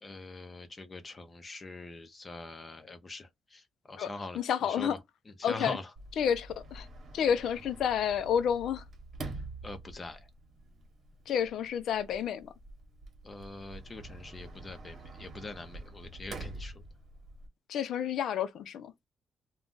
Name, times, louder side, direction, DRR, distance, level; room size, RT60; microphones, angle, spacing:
voice 1, 0.0-3.6 3.9-5.0 5.4-5.9 9.6-10.2 13.2-16.7, left 3 dB, 30° left, 0.7 m, -43 dB
voice 2, 4.3-5.0 5.4-5.8 6.2-6.9 7.1-8.8 11.3-12.5 17.7-18.9, left 8 dB, 75° left, 0.5 m, -30 dB
Sliding door, 6.0-17.5, right 2 dB, 60° right, 1.1 m, -47 dB
2.4 x 2.3 x 3.8 m
cardioid pair, 80°, 0 cm